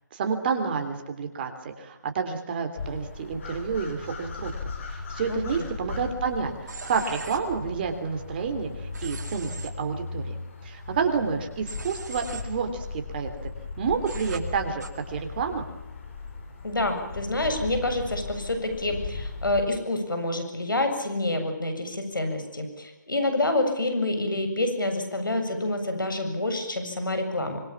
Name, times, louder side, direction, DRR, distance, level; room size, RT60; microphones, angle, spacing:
voice 1, 0.1-6.5 6.8-10.3 10.6-13.3 13.8-15.7, right 5 dB, 30° right, 6 dB, 3.3 m, -29 dB
sound 1, 2.8-19.7, left 4 dB, 40° left, 5.1 m, -37 dB
Human voice / Train, 6.7-7.4 8.9-9.7 11.7-12.4 14.1-14.4 14.8-14.9, right 4 dB, 55° right, 4.4 m, -39 dB
voice 2, 16.6-27.6, left 2 dB, 85° left, 6 dB, 7.8 m, -27 dB
25.5 x 22.5 x 7.3 m, 0.92 s
figure-of-eight pair, 160°, 11 cm